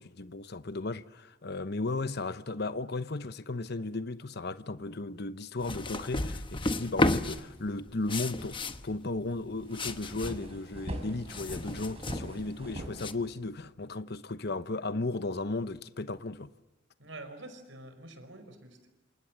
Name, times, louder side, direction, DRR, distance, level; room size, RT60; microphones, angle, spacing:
voice 1, 0.0-8.6 8.8-16.5, left 2 dB, 55° left, 1.0 m, -35 dB
sound 1, 5.6-13.1, left 2 dB, 25° left, 1.1 m, -33 dB
sound 2, 9.0-9.1 9.4-13.7, right 1 dB, 30° right, 5.5 m, -42 dB
voice 2, 12.5-13.2 17.0-18.9, right 2 dB, 75° right, 5.1 m, -48 dB
28.5 x 27.5 x 7.5 m
head